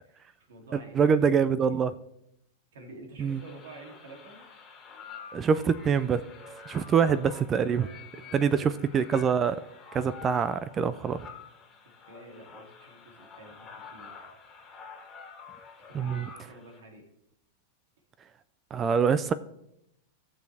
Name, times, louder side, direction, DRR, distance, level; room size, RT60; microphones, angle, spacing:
voice 1, 0.1-2.0 2.7-4.4 8.0-8.7 12.0-14.2 14.5-14.6 15.8-17.0, right 2 dB, 80° right, 2 dB, 2.9 m, -49 dB
voice 2, 0.7-1.9 3.2-3.4 5.3-6.2 6.7-7.9 8.3-9.6 9.9-11.3 15.9-16.3 18.7-19.3, right 6 dB, 20° right, 15 dB, 0.4 m, -25 dB
sound 1, 3.3-16.8, left 5 dB, 15° left, 2.0 m, -48 dB
17.0 x 6.3 x 3.5 m, 0.79 s
supercardioid pair, 145°, 0 cm